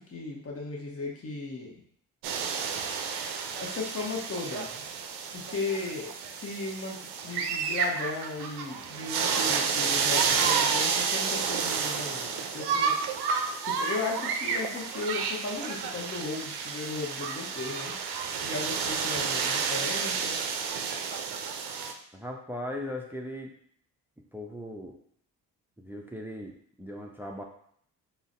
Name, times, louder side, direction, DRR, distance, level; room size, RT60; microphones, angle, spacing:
voice 1, 0.0-1.8 3.6-4.9 5.3-7.0 7.2-13.0 13.6-17.9 18.4-20.4, left 3 dB, 35° left, -1 dB, 1.0 m, -36 dB
sound 1, 2.2-21.9, right 6 dB, 65° right, 0.5 m, -30 dB
voice 2, 22.1-23.5 24.3-25.0 25.8-27.4, left 1 dB, 5° right, 1 dB, 0.5 m, -38 dB
3.8 x 2.1 x 2.5 m, 0.64 s
hypercardioid pair, 45°, 42 cm